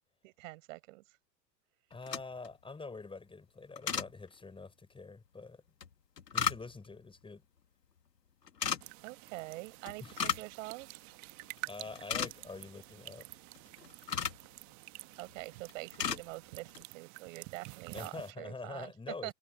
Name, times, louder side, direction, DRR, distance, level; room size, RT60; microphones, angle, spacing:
voice 1, 0.2-1.0 9.0-11.0 15.2-18.9 19.2-19.3, right 22 dB, 50° right, 6.8 m, -45 dB
sound 1, 1.9-2.5 3.8-4.1 5.8-6.9 8.5-8.8 9.9-10.5 10.8-10.9 11.4-11.6 11.9-12.6 13.5-14.5 15.2-15.4 15.7-16.2 16.6-16.8, left 7 dB, 80° left, 1.9 m, -35 dB
voice 2, 1.9-5.6 6.3-7.4 10.0-10.2 11.4-13.3 17.9-19.3, left 3 dB, 10° left, 5.9 m, -45 dB
sound 2, 8.8-18.3, right 24 dB, 35° right, 1.3 m, -50 dB
figure-of-eight pair, 100°, 48 cm